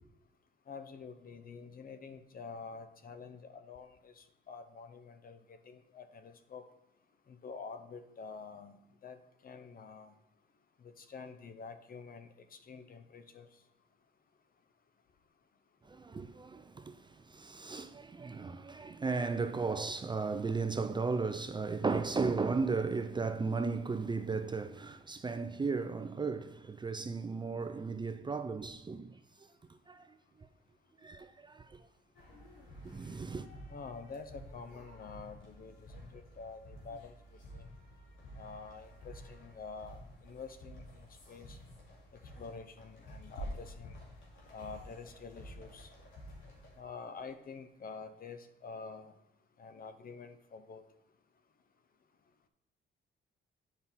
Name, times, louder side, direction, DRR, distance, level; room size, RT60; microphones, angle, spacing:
voice 1, 0.7-6.7 7.3-8.8 9.0-10.2 10.8-13.6 33.7-37.7 38.3-41.6 42.1-44.0 44.5-45.9 46.7-49.1 49.6-50.8, left 5 dB, 45° left, 0.8 m, -48 dB
voice 2, 15.9-29.2 29.9-30.1 31.0-31.9 32.8-33.5, right 4 dB, 25° right, 0.5 m, -35 dB
sound 1, 32.1-46.8, equal, 80° left, 2.5 m, -50 dB
8.1 x 5.4 x 4.2 m
cardioid pair, 90°, 20 cm